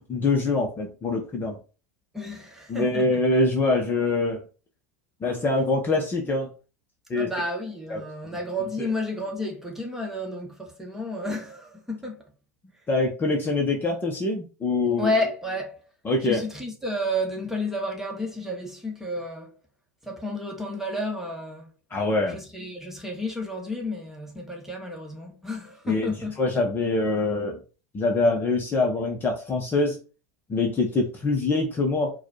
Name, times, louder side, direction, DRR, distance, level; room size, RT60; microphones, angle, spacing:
voice 1, 0.1-1.6 2.7-4.4 5.2-6.5 7.1-7.3 7.9-8.0 8.8-8.9 12.9-15.1 16.0-16.4 21.9-22.4 25.9-27.6 27.9-30.0 30.5-32.1, left 2 dB, 20° left, 0.9 m, -24 dB
voice 2, 2.1-3.2 7.1-12.2 15.0-15.8 16.2-19.5 20.0-21.7 22.3-26.4, left 1 dB, 5° right, 1.3 m, -31 dB
4.6 x 2.3 x 4.2 m
figure-of-eight pair, 85°, 9 cm